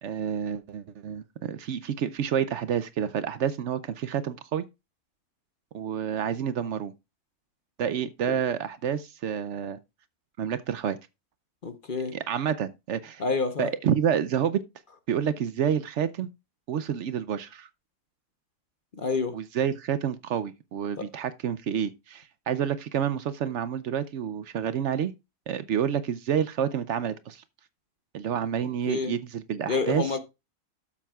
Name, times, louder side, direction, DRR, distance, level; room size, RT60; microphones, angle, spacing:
voice 1, 0.0-4.6 5.7-6.9 7.8-9.8 10.4-11.0 12.1-13.2 13.6-14.6 15.1-16.3 16.7-17.7 19.3-25.1 25.5-27.4 28.1-30.1, right 8 dB, 65° right, 0.7 m, -29 dB
voice 2, 11.6-12.2 13.2-13.7 18.9-19.4 21.0-21.1 28.9-29.1 29.7-30.2, left 4 dB, 40° left, 0.8 m, -28 dB
12.5 x 7.3 x 2.3 m
omnidirectional pair, 1.7 m